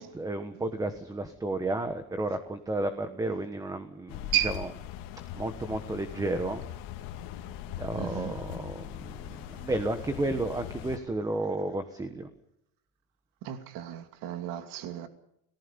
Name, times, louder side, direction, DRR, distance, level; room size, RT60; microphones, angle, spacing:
voice 1, 0.0-4.7 5.3-6.6 7.4-7.5 7.8-12.3, right 2 dB, 10° right, 1.3 m, -32 dB
sound 1, 4.1-11.0, left 11 dB, 55° left, 2.4 m, -41 dB
voice 2, 8.0-8.3 13.4-15.1, right 12 dB, 55° right, 2.6 m, -32 dB
29.5 x 19.0 x 5.3 m
cardioid pair, 165°, 40 cm